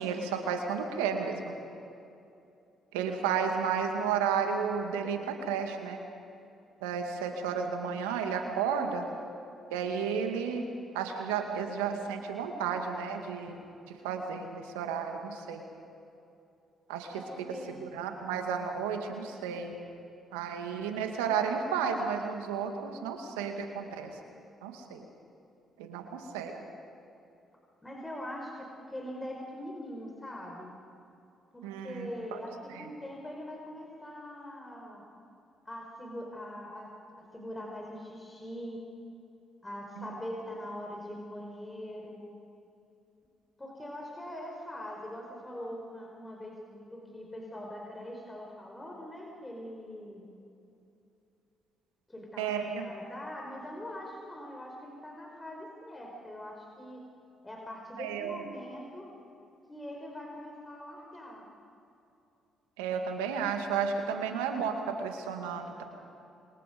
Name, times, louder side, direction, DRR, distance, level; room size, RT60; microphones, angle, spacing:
voice 1, 0.0-1.5 2.9-6.0 6.8-9.1 9.7-10.6 10.9-13.6 13.9-15.6 16.9-17.1 17.8-19.7 20.3-24.1 24.6-25.1 25.8-26.5 31.6-32.4 32.7-32.9 40.0-40.1 52.4-52.9 58.0-58.5 62.8-65.8, right 6 dB, 85° right, 4 dB, 2.1 m, -32 dB
voice 2, 17.1-17.7 27.8-30.7 31.5-32.5 32.8-35.0 35.6-38.8 39.6-42.2 43.6-50.3 52.1-57.0 57.4-59.1 59.7-61.5, left 1 dB, 20° left, 0 dB, 4.9 m, -42 dB
27.5 x 23.5 x 5.3 m, 2.7 s
hypercardioid pair, 50°, 0 cm